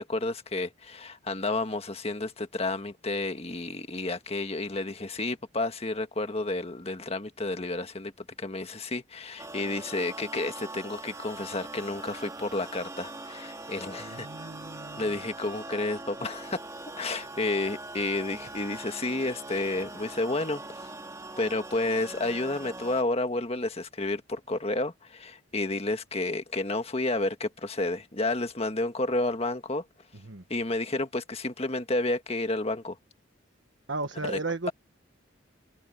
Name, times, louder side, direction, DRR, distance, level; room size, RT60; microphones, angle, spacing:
voice 1, 0.0-8.1 8.4-14.3 15.0-16.6 17.0-20.6 21.4-29.8 30.5-33.0 34.3-34.4, left 2 dB, 30° left, 1.6 m, -31 dB
sound 1, 9.4-23.0, right 2 dB, 15° right, 2.0 m, -42 dB
voice 2, 14.0-15.2 30.2-30.4 33.9-34.7, right 3 dB, 65° right, 1.5 m, -35 dB
head